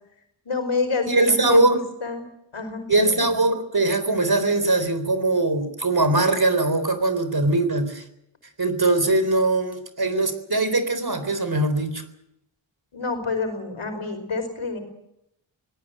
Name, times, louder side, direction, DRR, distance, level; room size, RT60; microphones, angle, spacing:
voice 1, 0.4-2.2 2.5-3.3 12.9-14.8, left 4 dB, 90° left, 7 dB, 5.0 m, -28 dB
voice 2, 1.1-1.8 2.9-8.0 8.6-12.0, right 2 dB, 50° right, 11 dB, 3.9 m, -21 dB
24.0 x 18.5 x 7.7 m, 0.80 s
cardioid pair, 45°, 47 cm